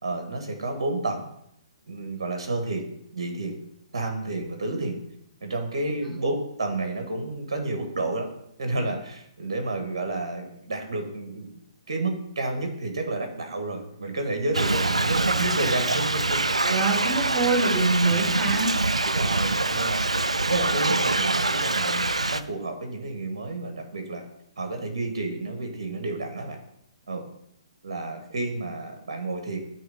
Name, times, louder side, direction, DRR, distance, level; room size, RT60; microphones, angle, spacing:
voice 1, 0.0-1.3 1.9-2.9 3.1-3.6 3.9-5.0 5.4-8.3 8.6-11.5 11.9-16.4 19.1-20.0 20.5-24.2 24.6-26.6 27.1-27.3 27.8-29.6, right 2 dB, 55° right, 4 dB, 1.4 m, -30 dB
Thunder / Rain, 14.5-22.4, right 2 dB, 80° right, 0.3 m, -24 dB
voice 2, 16.6-18.7, right 3 dB, 15° right, -11 dB, 3.0 m, -24 dB
9.2 x 3.1 x 5.0 m, 0.75 s
figure-of-eight pair, 125°, 3 cm